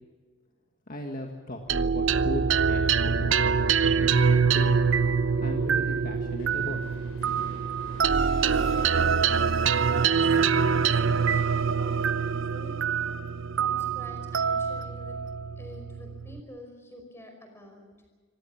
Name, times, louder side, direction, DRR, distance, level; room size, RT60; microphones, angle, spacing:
voice 1, 0.9-2.9 3.2-3.4 4.0-4.8 5.4-6.8, left 1 dB, 45° left, 2 dB, 2.0 m, -37 dB
sound 1, 1.6-9.1, equal, 80° left, 6.6 m, -49 dB
sound 2, 1.7-16.4, right 6 dB, 70° right, 0.7 m, -25 dB
voice 2, 8.6-9.4 9.8-12.8 13.6-15.2 15.6-17.9, left 1 dB, 10° left, 4 dB, 5.3 m, -46 dB
25.5 x 18.0 x 7.3 m, 1.4 s
head